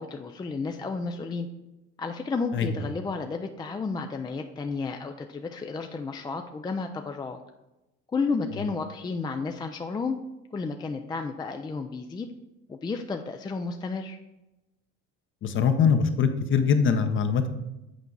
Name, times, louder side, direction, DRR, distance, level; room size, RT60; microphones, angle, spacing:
voice 1, 0.0-1.5 2.0-7.4 8.1-10.2 10.5-12.3 12.7-14.2, left 4 dB, 15° left, 5 dB, 0.4 m, -32 dB
voice 2, 15.4-17.5, left 6 dB, 40° left, 8 dB, 0.8 m, -22 dB
8.1 x 4.6 x 3.9 m, 0.97 s
supercardioid pair, 110°, 31 cm